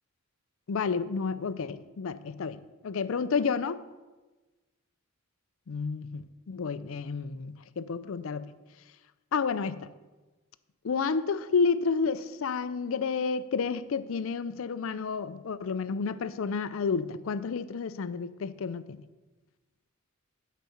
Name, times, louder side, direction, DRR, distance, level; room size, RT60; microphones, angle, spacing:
voice 1, 0.7-3.8 5.7-8.5 9.3-9.9 10.8-19.0, left 5 dB, 70° left, 13 dB, 0.4 m, -30 dB
12.0 x 4.2 x 5.7 m, 1.2 s
head